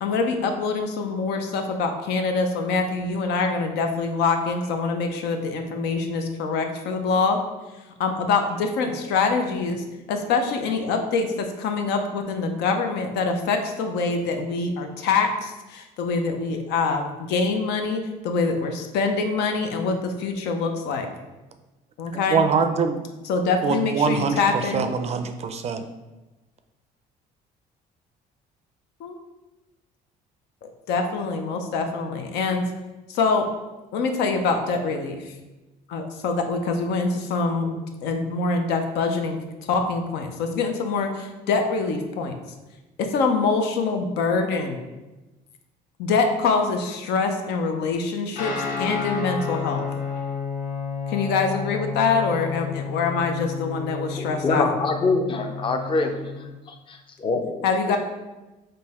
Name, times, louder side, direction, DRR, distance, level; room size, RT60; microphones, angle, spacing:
voice 1, 0.0-7.4 8.0-21.1 22.0-22.4 23.2-24.9 29.0-29.2 30.6-32.6 33.1-33.5 33.9-35.3 35.9-39.4 39.7-42.3 43.0-44.8 46.0-49.9 51.1-54.7 57.6-58.0, left 4 dB, 85° left, 5 dB, 0.6 m, -25 dB
voice 2, 22.3-23.0 23.6-25.9, right 5 dB, 40° right, 8 dB, 0.4 m, -23 dB
Guitar, 48.4-56.4, left 5 dB, 50° left, 0.9 m, -31 dB
voice 3, 54.2-56.1 56.7-57.7, left 3 dB, 30° left, 5 dB, 0.5 m, -25 dB
3.7 x 2.6 x 4.2 m, 1.1 s
cardioid pair, 110°, 17 cm